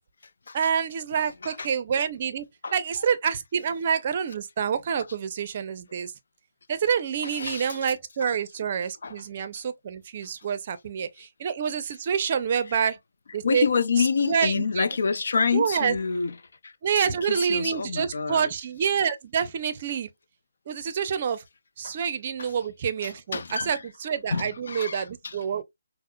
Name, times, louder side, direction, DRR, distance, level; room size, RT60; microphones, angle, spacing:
voice 1, 0.5-2.4 2.7-6.1 6.7-13.0 13.3-13.7 14.2-14.9 15.5-16.0 16.8-20.1 20.7-21.4 21.8-25.6, right 7 dB, 40° right, 0.5 m, -27 dB
voice 2, 1.2-1.7 2.6-2.7 7.2-7.8 8.2-8.3 9.0-9.2 13.4-16.3 16.6-18.5 21.8-22.0 22.4-22.5 23.0-23.8 24.3-25.4, left 5 dB, 60° left, 0.4 m, -28 dB
5.3 x 2.0 x 2.3 m
figure-of-eight pair, 145°, 0 cm